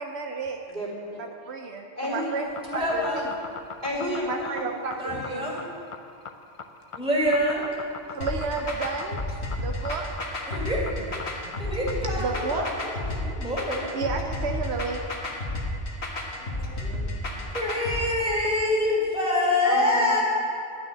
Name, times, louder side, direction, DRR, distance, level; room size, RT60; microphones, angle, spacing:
voice 1, 0.0-0.6 1.2-2.5 2.7-3.3 4.2-5.5 8.1-9.2 9.6-10.4 11.4-11.5 12.1-12.8 13.9-15.1, right 4 dB, 85° right, 3 dB, 1.0 m, -32 dB
voice 2, 0.7-1.2 2.0-2.2 3.8-4.6 16.3-17.1 19.6-20.1, equal, 45° right, -6 dB, 3.4 m, -32 dB
sound 1, 2.4-12.1, left 5 dB, 40° left, 0.5 m, -40 dB
voice 3, 2.6-3.3 5.0-5.6 6.9-7.6 10.5-10.8 11.6-14.0 17.5-20.2, left 1 dB, 5° right, -5 dB, 2.4 m, -26 dB
sound 2, 8.2-18.0, left 1 dB, 85° left, 1.9 m, -31 dB
11.5 x 6.3 x 9.1 m, 2.4 s
omnidirectional pair, 1.1 m